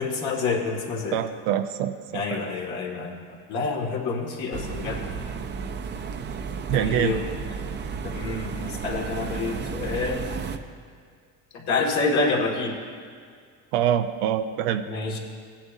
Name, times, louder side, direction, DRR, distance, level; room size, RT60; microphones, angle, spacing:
voice 1, 0.0-1.2 2.1-5.1 6.7-7.3 8.0-10.3 11.5-12.8 14.9-15.2, left 3 dB, 60° left, -1 dB, 2.2 m, -28 dB
voice 2, 1.1-2.4 6.7-7.2 13.7-14.8, right 10 dB, 90° right, 8 dB, 0.6 m, -25 dB
sound 1, 4.5-10.6, right 5 dB, 35° right, 0.6 m, -33 dB
16.5 x 10.0 x 2.7 m, 2.1 s
supercardioid pair, 105°, 33 cm